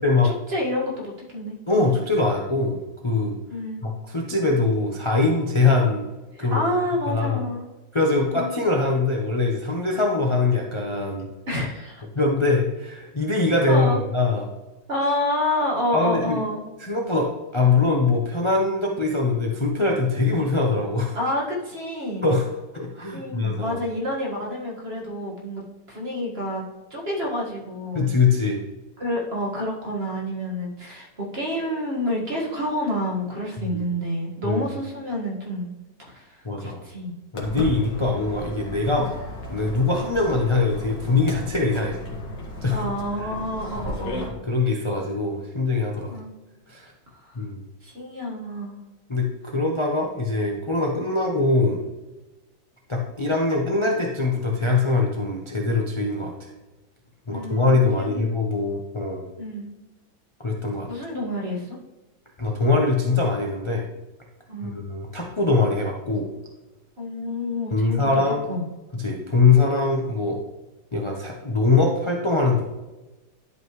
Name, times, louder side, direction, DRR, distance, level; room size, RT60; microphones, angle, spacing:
voice 1, 0.2-1.9 3.5-3.8 6.3-7.7 8.1-8.5 11.5-12.0 13.7-14.0 14.9-16.6 21.1-22.3 23.1-28.1 29.0-35.7 36.1-37.1 42.7-44.3 46.1-46.3 47.1-47.4 47.8-48.8 57.3-58.3 59.4-59.7 60.9-61.8 64.5-64.8 67.0-68.0 68.5-68.6, left 1 dB, 35° right, -2 dB, 1.9 m, -29 dB
voice 2, 1.7-3.3 3.8-6.0 6.4-6.6 7.1-7.4 7.9-11.3 12.1-14.4 15.9-16.4 16.8-21.2 22.2-22.5 22.7-23.8 27.9-28.6 33.6-33.8 34.4-34.6 36.4-36.8 37.3-39.1 39.5-42.0 42.6-42.9 43.9-44.0 44.4-46.2 46.7-46.9 47.3-47.6 49.1-51.8 52.9-56.5 57.3-59.2 60.4-60.9 62.4-63.9 64.6-66.3 67.7-68.5 68.9-70.4 70.9-72.6, left 3 dB, 45° left, -1 dB, 0.4 m, -22 dB
Walk footsteps, 37.3-44.3, left 1 dB, 70° left, 2.3 m, -34 dB
11.0 x 5.4 x 3.1 m, 1.1 s
omnidirectional pair, 2.0 m